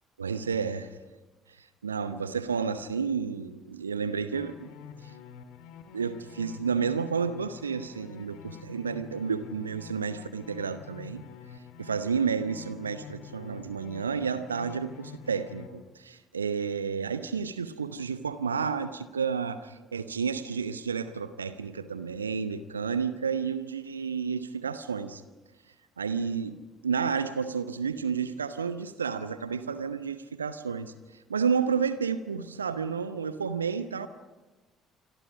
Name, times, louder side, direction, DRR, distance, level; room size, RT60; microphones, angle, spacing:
voice 1, 0.2-0.9 1.6-4.7 5.0-5.1 5.9-11.2 11.8-25.2 26.0-34.1, right 6 dB, 80° right, 13 dB, 0.9 m, -31 dB
sound 1, 4.3-15.7, left 7 dB, 65° left, 2.2 m, -47 dB
27.5 x 26.0 x 5.1 m, 1.2 s
figure-of-eight pair, 50°, 0 cm